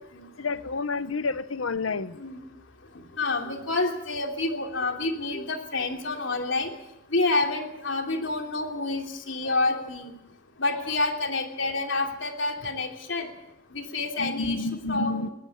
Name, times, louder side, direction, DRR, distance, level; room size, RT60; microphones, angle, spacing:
voice 1, 0.4-2.2 14.2-15.3, left 3 dB, 90° left, 1.0 m, -29 dB
voice 2, 3.2-6.7 7.1-10.1 10.6-13.3 13.7-15.3, left 3 dB, 70° left, 3.1 m, -28 dB
21.0 x 18.5 x 8.7 m
head